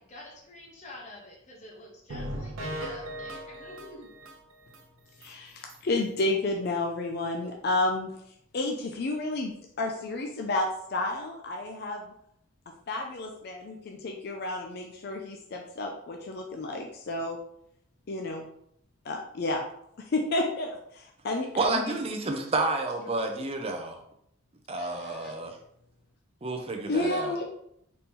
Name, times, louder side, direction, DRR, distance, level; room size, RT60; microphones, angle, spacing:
voice 1, 0.0-4.1, left 1 dB, 35° left, -2 dB, 0.7 m, -47 dB
sound 1, 2.1-4.8 5.2-5.3 5.7-5.8 6.2-6.3, right 1 dB, 90° right, 0.6 m, -38 dB
voice 2, 5.2-8.1 8.5-12.1 12.9-17.4 18.1-18.5 19.0-19.6 20.0-22.0 24.8-25.3 26.9-27.4, left 2 dB, 50° left, 2 dB, 0.4 m, -31 dB
voice 3, 21.6-24.0 24.7-25.6 26.4-27.3, right 2 dB, 30° right, 4 dB, 0.5 m, -30 dB
4.1 x 2.8 x 3.6 m, 0.73 s
head